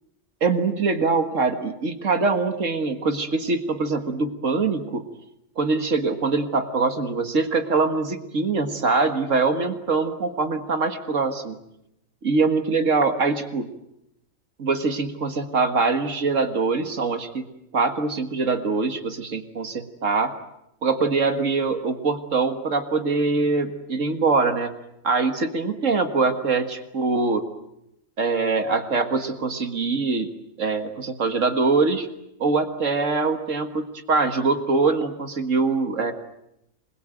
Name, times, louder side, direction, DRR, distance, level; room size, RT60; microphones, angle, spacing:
voice 1, 0.4-5.0 5.6-11.6 12.2-13.7 14.6-17.5 17.7-20.3 20.8-24.8 25.0-27.5 28.2-30.3 30.6-32.1 32.4-36.1, right 4 dB, 70° right, 7 dB, 2.1 m, -23 dB
27.0 x 21.0 x 9.1 m, 0.84 s
omnidirectional pair, 1.4 m